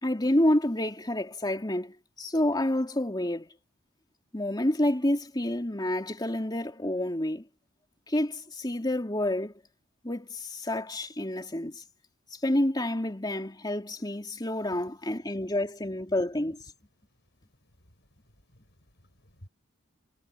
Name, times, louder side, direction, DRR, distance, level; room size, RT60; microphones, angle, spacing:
voice 1, 0.0-3.5 4.3-7.5 8.1-9.5 10.0-11.8 12.3-16.6, left 1 dB, 20° left, 3.2 m, -28 dB
voice 2, 17.6-19.5, equal, 55° left, 7.2 m, -57 dB
head